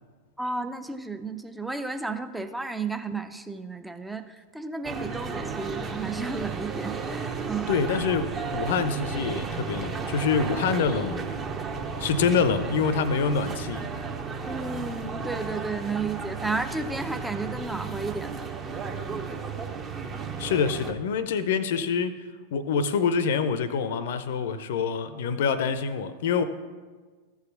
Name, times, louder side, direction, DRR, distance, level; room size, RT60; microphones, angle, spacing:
voice 1, 0.4-7.7 14.4-18.5, right 3 dB, 5° right, 9 dB, 0.5 m, -33 dB
sound 1, 4.8-20.9, right 5 dB, 25° right, 0.9 m, -33 dB
voice 2, 7.7-11.2 12.0-13.9 20.4-22.1 22.5-26.4, left 6 dB, 55° left, 13 dB, 0.6 m, -26 dB
14.5 x 4.8 x 5.8 m, 1.4 s
figure-of-eight pair, 90°, 0 cm